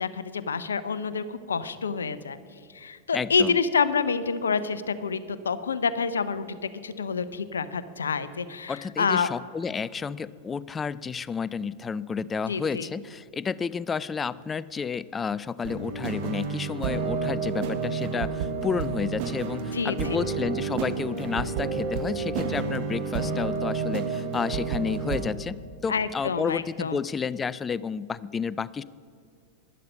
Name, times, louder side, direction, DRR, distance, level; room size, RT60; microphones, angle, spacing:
voice 1, 0.0-2.4 2.7-9.3 12.5-12.9 19.7-20.2 25.9-27.0, left 5 dB, 70° left, 15 dB, 0.6 m, -28 dB
voice 2, 3.1-3.6 8.7-28.8, left 6 dB, 20° left, 19 dB, 0.3 m, -31 dB
sound 1, 15.6-25.3, right 5 dB, 45° right, 1.2 m, -30 dB
11.5 x 11.0 x 5.3 m, 2.3 s
figure-of-eight pair, 90°, 0 cm